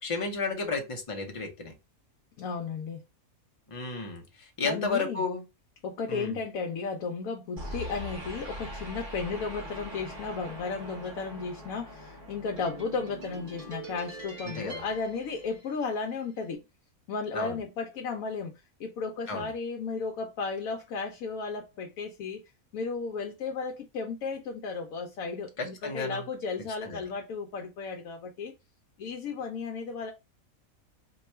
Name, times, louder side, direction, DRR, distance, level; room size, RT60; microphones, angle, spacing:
voice 1, 0.0-1.7 3.7-5.4 6.1-6.4 14.4-14.8 17.3-17.6 19.3-19.5 25.6-26.2 26.8-27.0, left 4 dB, 35° left, 0.5 m, -32 dB
voice 2, 2.4-3.0 4.6-5.2 5.8-16.6 17.1-18.5 18.8-22.4 22.7-28.5 29.0-30.1, left 4 dB, 75° left, 1.0 m, -34 dB
sound 1, 7.6-16.1, equal, 40° right, 1.2 m, -42 dB
2.9 x 2.3 x 4.1 m
omnidirectional pair, 1.5 m